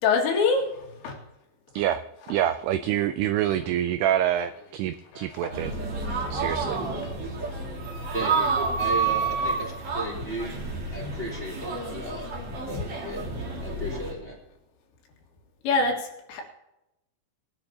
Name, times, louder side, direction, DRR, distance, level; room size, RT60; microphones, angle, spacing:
voice 1, 0.0-0.7 1.0-1.2 5.2-5.5 11.0-11.2 12.7-12.8 15.6-16.5, left 4 dB, 80° left, 0 dB, 4.1 m, -25 dB
voice 2, 2.3-5.7 6.3-6.8, right 11 dB, 85° right, 10 dB, 2.3 m, -26 dB
sound 1, 5.5-14.1, right 4 dB, 45° right, 2.4 m, -29 dB
voice 3, 8.1-10.7 10.9-12.4 12.7-13.3 13.6-14.3, right 1 dB, 15° right, -4 dB, 2.6 m, -35 dB
21.5 x 11.0 x 2.8 m, 0.91 s
omnidirectional pair, 5.1 m